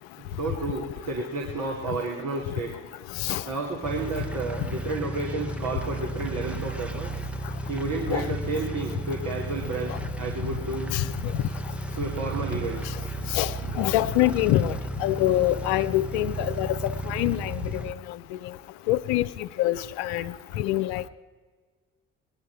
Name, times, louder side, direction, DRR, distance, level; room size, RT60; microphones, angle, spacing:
voice 1, 0.4-2.7 3.5-7.1 7.7-9.9 10.2-11.0 12.0-12.8, right 3 dB, 60° right, -2 dB, 2.7 m, -31 dB
sound 1, 3.8-17.9, right 2 dB, 5° right, 0.9 m, -34 dB
voice 2, 13.8-17.9 18.9-19.3 19.6-21.1, left 15 dB, 80° left, 13 dB, 0.6 m, -25 dB
21.0 x 11.0 x 4.7 m, 1.5 s
hypercardioid pair, 45°, 34 cm